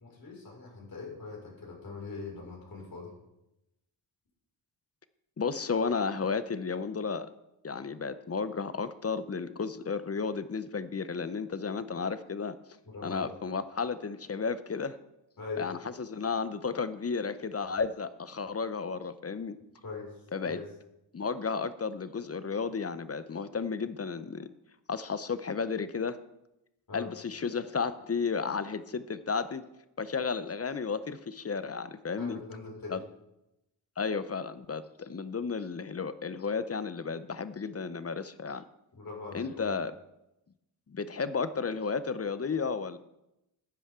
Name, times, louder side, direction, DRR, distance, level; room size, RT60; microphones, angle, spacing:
voice 1, 0.0-3.1 12.9-13.3 15.4-15.7 19.8-20.7 26.9-27.1 32.2-33.0 38.9-39.7, left 4 dB, 50° left, -3 dB, 5.5 m, -42 dB
voice 2, 5.4-7.3 7.6-12.6 13.0-15.0 15.6-19.6 20.3-20.6 21.1-24.5 24.9-26.2 26.9-29.6 30.0-32.4 32.9-33.0 34.0-38.6 39.3-39.9 40.9-43.0, left 5 dB, 35° left, 13 dB, 0.7 m, -33 dB
14.5 x 10.0 x 3.7 m, 0.89 s
cardioid pair, 80°, 43 cm